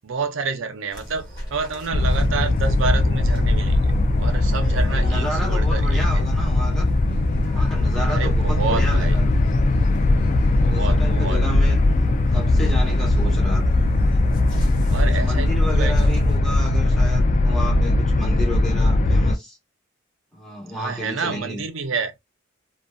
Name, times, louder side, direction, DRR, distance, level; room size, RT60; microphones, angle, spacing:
voice 1, 0.0-3.9 4.2-6.2 8.1-9.2 10.6-11.4 14.9-16.3 20.8-22.1, right 4 dB, 75° right, 0.6 m, -29 dB
sound 1, 0.9-16.4, equal, 20° left, 1.2 m, -37 dB
sound 2, 1.9-19.3, left 2 dB, 40° left, 0.3 m, -19 dB
voice 2, 4.9-6.9 7.5-9.3 10.6-11.9 12.3-13.8 15.1-19.6 20.3-21.7, equal, 5° left, 1.1 m, -32 dB
2.6 x 2.3 x 2.3 m
head